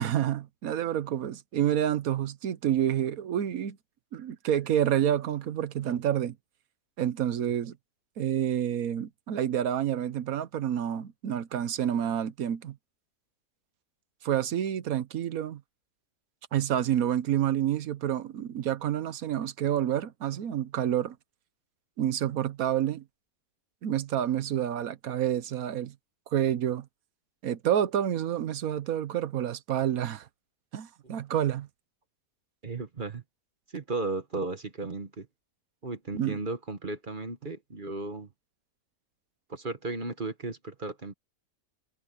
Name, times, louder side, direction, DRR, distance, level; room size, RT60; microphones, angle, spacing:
voice 1, 0.0-3.8 4.1-6.4 7.0-7.8 8.2-12.8 14.2-15.6 16.5-21.2 22.0-23.0 23.8-25.9 26.3-26.9 27.4-30.3 30.7-31.7 36.1-36.4, right 10 dB, 70° right, 1.3 m, -28 dB
voice 2, 32.6-33.2 33.7-35.3 35.8-38.3 39.5-41.1, right 3 dB, 35° right, 1.3 m, -35 dB
omnidirectional pair, 1.6 m